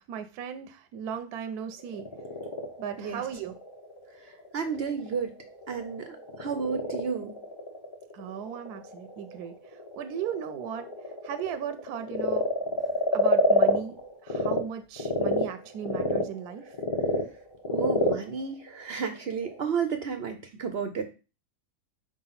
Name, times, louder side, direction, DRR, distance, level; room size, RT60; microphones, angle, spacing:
voice 1, 0.0-2.1 2.8-3.6 8.1-9.5 10.0-10.9 11.2-12.5 13.1-14.0 14.2-16.7, right 8 dB, 75° right, 8 dB, 1.1 m, -36 dB
Frog, 1.7-14.6 15.0-19.6, left 3 dB, 20° left, 0.8 m, -29 dB
voice 2, 4.5-5.3 5.7-7.3 17.7-21.0, right 6 dB, 60° right, 7 dB, 0.6 m, -32 dB
4.7 x 3.8 x 5.6 m, 0.32 s
omnidirectional pair, 1.7 m